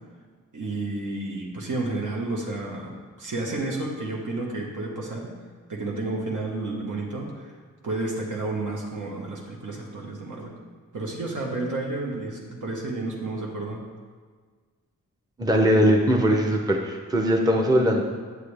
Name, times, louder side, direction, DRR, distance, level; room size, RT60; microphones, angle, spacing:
voice 1, 0.5-5.3 5.7-7.5 7.8-10.5 10.9-13.8, right 2 dB, 70° right, -2 dB, 1.3 m, -31 dB
voice 2, 15.4-18.0, equal, 10° right, 1 dB, 0.6 m, -20 dB
9.2 x 8.3 x 3.3 m, 1.5 s
wide cardioid pair, 175°, 33 cm